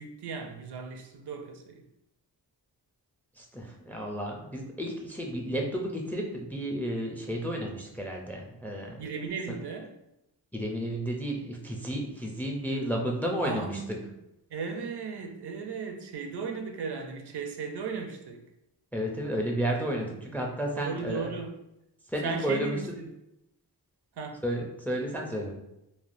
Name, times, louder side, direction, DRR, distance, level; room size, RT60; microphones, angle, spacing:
voice 1, 0.0-1.8 9.0-9.9 13.4-14.1 14.5-18.4 20.7-21.6 22.2-23.1 24.2-24.4, right 5 dB, 70° right, 5 dB, 0.5 m, -36 dB
voice 2, 3.4-9.0 9.5-9.6 10.5-13.8 18.9-21.3 22.1-22.8 24.4-25.6, equal, 5° left, 1 dB, 0.4 m, -32 dB
3.2 x 2.1 x 2.5 m, 0.88 s
wide cardioid pair, 70°, 42 cm